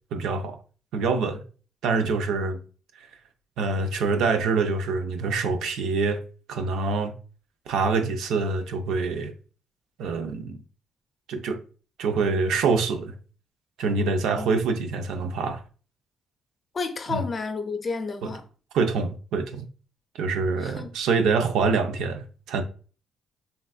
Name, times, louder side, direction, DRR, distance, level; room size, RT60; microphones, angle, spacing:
voice 1, 0.1-0.6 0.9-1.4 1.8-2.6 3.0-3.1 3.6-6.2 6.5-7.1 7.7-9.3 10.0-10.6 11.3-11.6 12.0-13.1 13.8-15.6 17.1-17.2 18.2-18.3 18.7-19.7 20.1-22.6, right 4 dB, 85° right, 0.4 m, -25 dB
voice 2, 16.7-18.4 20.6-20.9, left 4 dB, 40° left, 0.5 m, -31 dB
3.4 x 2.4 x 2.3 m
cardioid pair, 90°, 0 cm